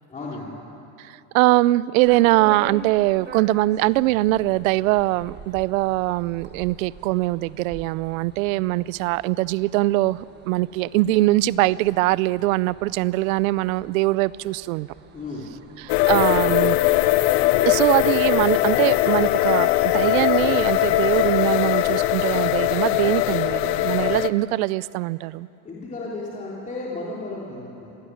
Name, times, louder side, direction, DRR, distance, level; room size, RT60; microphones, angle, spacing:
voice 1, 0.1-0.5 15.1-15.4 25.6-27.9, left 2 dB, 15° left, -5 dB, 3.4 m, -34 dB
voice 2, 1.0-14.9 15.8-16.8 17.6-25.5, right 18 dB, 60° right, 20 dB, 0.6 m, -22 dB
sound 1, 2.0-16.3, right 5 dB, 20° right, 1.6 m, -44 dB
sound 2, 15.9-24.3, left 16 dB, 45° left, 0.8 m, -20 dB
26.0 x 18.0 x 9.3 m, 2.8 s
supercardioid pair, 155°, 47 cm